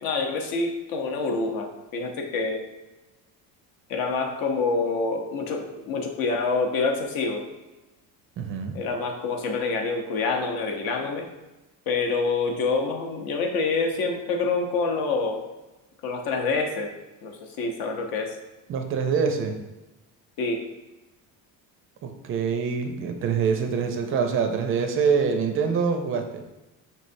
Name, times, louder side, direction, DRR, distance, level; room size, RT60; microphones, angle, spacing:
voice 1, 0.0-2.6 3.9-7.4 8.7-11.2 11.9-15.4 16.0-16.9 17.2-17.3 17.6-18.4 20.4-20.6, left 4 dB, 65° left, 3 dB, 0.8 m, -26 dB
voice 2, 8.4-8.8 18.7-19.6 22.0-26.4, right 6 dB, 35° right, 5 dB, 0.4 m, -25 dB
5.5 x 3.1 x 2.6 m, 1.1 s
cardioid pair, 165°, 37 cm